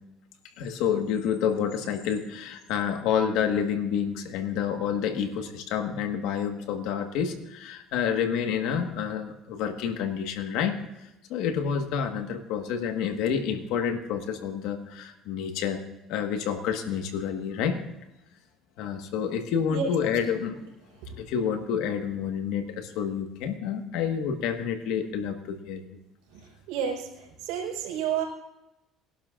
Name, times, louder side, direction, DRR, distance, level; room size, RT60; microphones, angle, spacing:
voice 1, 0.6-10.8 11.3-15.8 16.1-17.8 18.8-20.6 21.1-26.0, left 7 dB, 75° left, 6 dB, 1.5 m, -29 dB
voice 2, 26.7-28.2, right 8 dB, 80° right, 0 dB, 4.3 m, -30 dB
21.0 x 11.5 x 2.5 m, 0.92 s
supercardioid pair, 100°, 0 cm